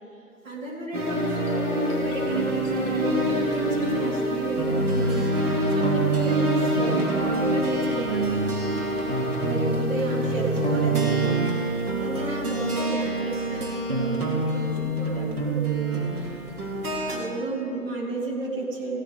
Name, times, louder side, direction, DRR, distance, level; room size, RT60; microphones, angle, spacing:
voice 1, 0.4-8.4 9.4-16.4 17.1-19.0, right 2 dB, 60° right, -3 dB, 3.3 m, -33 dB
sound 1, 0.9-17.2, right 2 dB, 90° right, 2.5 m, -25 dB
sound 2, 1.1-5.5, left 3 dB, 25° left, 2.6 m, -36 dB
15.5 x 11.5 x 3.5 m, 2.7 s
figure-of-eight pair, 140°, 44 cm